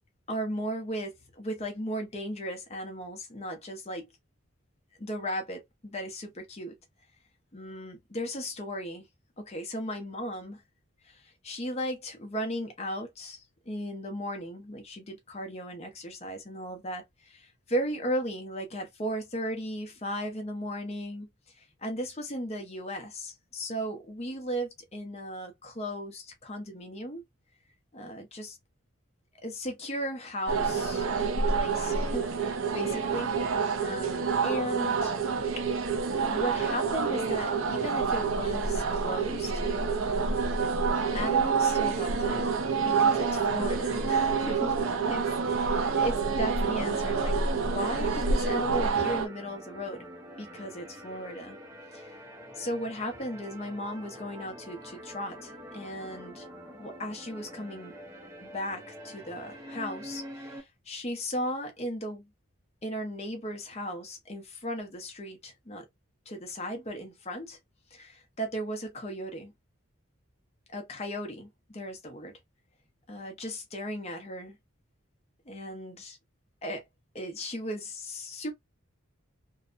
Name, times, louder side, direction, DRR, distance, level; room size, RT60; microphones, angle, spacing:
voice 1, 0.3-4.1 5.0-6.7 7.5-9.1 9.4-10.6 11.0-21.3 21.6-27.2 27.9-28.6 29.4-31.1 31.6-33.3 33.8-35.1 36.3-39.6 41.1-42.6 42.8-50.0 50.4-51.6 51.9-52.2 52.5-56.5 56.7-57.9 58.4-62.3 62.8-65.8 66.3-67.6 67.9-69.5 70.7-72.3 73.1-74.6 75.5-76.2 76.6-76.8 77.1-78.5, equal, 30° left, 0.7 m, -36 dB
sound 1, 30.5-49.3, right 5 dB, 70° right, 0.5 m, -27 dB
sound 2, 46.9-60.6, equal, 15° right, 0.6 m, -46 dB
2.6 x 2.1 x 2.4 m
head